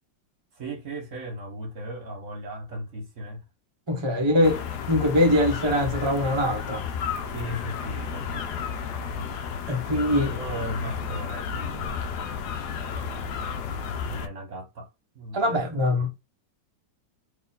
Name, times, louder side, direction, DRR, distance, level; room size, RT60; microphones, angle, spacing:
voice 1, 0.6-3.4 4.2-4.5 7.3-8.7 9.2-9.4 10.2-12.0 12.8-13.5 14.1-14.9 15.1-15.8, right 1 dB, 45° right, 1.3 m, -37 dB
voice 2, 3.9-4.6 4.9-6.8 9.7-10.3 15.3-16.1, left 1 dB, 20° right, 0.7 m, -22 dB
fireworks and seagulls, 4.4-14.3, left 6 dB, 70° left, 1.1 m, -32 dB
4.1 x 3.1 x 3.9 m
omnidirectional pair, 2.0 m